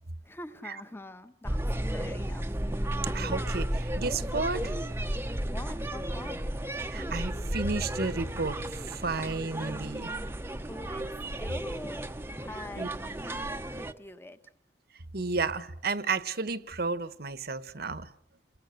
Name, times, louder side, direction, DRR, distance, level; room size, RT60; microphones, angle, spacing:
voice 1, 0.2-2.4 5.4-6.4 10.7-12.1 12.4-14.5, left 1 dB, 15° left, 1.2 m, -45 dB
sound 1, 1.4-13.9, right 1 dB, 15° right, 0.9 m, -33 dB
voice 2, 3.1-4.7 6.9-10.1 12.8-12.9 15.1-18.1, right 3 dB, 60° right, 1.2 m, -32 dB
29.0 x 21.5 x 6.5 m
head